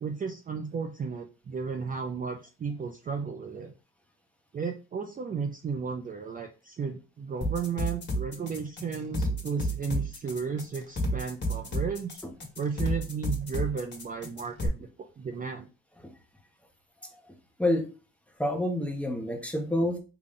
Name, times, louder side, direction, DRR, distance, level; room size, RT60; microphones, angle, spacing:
voice 1, 0.0-3.7 4.5-12.2 12.6-15.7, right 5 dB, 30° right, 3 dB, 0.4 m, -34 dB
sound 1, 7.4-14.7, equal, 35° left, 1.4 m, -31 dB
voice 2, 17.0-17.9 18.4-20.0, left 1 dB, 5° left, 3 dB, 0.8 m, -29 dB
3.8 x 2.3 x 3.6 m, 0.33 s
cardioid pair, 90°, 30 cm